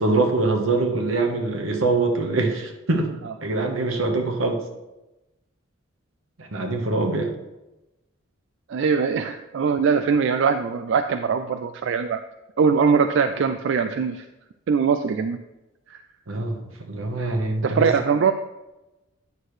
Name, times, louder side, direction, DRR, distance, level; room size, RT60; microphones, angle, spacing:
voice 1, 0.0-3.1 3.4-4.6 6.4-7.3 16.3-17.9, right 3 dB, 85° right, 3 dB, 1.2 m, -23 dB
voice 2, 8.7-12.2 12.6-14.3 14.7-15.4 15.9-16.0 17.6-18.3, right 6 dB, 65° right, 8 dB, 0.3 m, -22 dB
9.4 x 6.4 x 3.2 m, 0.99 s
head